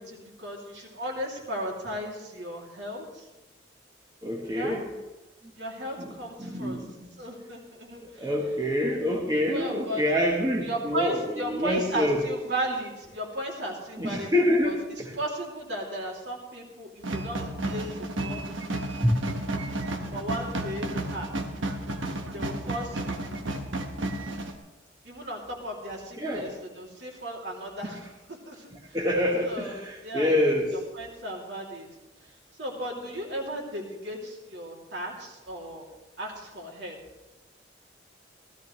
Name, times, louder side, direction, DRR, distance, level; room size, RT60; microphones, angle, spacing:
voice 1, 0.0-3.3 4.5-4.8 5.6-6.8 7.2-8.3 9.5-10.0 10.6-14.3 14.6-14.8 15.1-18.4 20.1-21.3 22.1-23.3 25.0-28.0 28.3-29.0 29.4-31.9 32.6-35.9 36.2-37.0, right 1 dB, 60° right, -1 dB, 2.7 m, -35 dB
voice 2, 4.2-4.9 6.0-6.9 8.0-12.2 14.0-15.1 19.0-19.2 26.2-26.5 28.9-30.8, left 1 dB, 20° right, -1 dB, 1.2 m, -26 dB
sound 1, 17.0-24.6, right 1 dB, 80° right, 1.2 m, -32 dB
16.5 x 13.5 x 3.2 m, 1.1 s
head